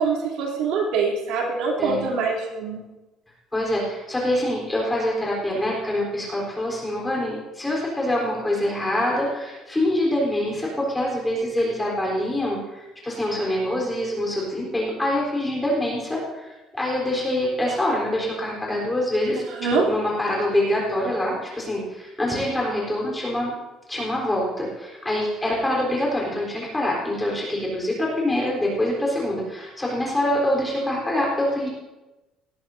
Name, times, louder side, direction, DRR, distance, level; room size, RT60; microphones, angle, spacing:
voice 1, 0.0-2.8 19.5-19.9, right 4 dB, 85° right, -1 dB, 3.2 m, -24 dB
voice 2, 3.5-23.5 23.9-31.7, left 1 dB, 10° left, -3 dB, 3.9 m, -25 dB
18.5 x 13.0 x 2.8 m, 1.1 s
cardioid pair, 165°, 0 cm